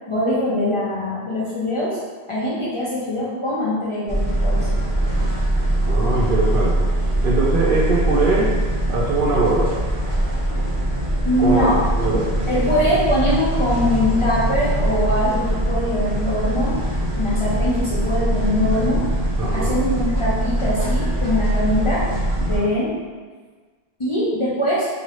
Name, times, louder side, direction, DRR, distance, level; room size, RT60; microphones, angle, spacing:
voice 1, 0.1-2.0 2.3-4.7 11.2-11.8 12.5-16.8 17.2-19.1 19.5-22.1 22.4-23.0 24.0-24.9, left 1 dB, 35° left, -8 dB, 0.6 m, -22 dB
sound 1, 4.1-22.6, right 1 dB, 20° right, 0.8 m, -22 dB
voice 2, 5.9-6.9 7.2-8.5 8.9-9.7 11.4-12.3 19.4-19.7, right 2 dB, 60° right, -3 dB, 0.7 m, -21 dB
2.9 x 2.7 x 2.9 m, 1.4 s
omnidirectional pair, 1.1 m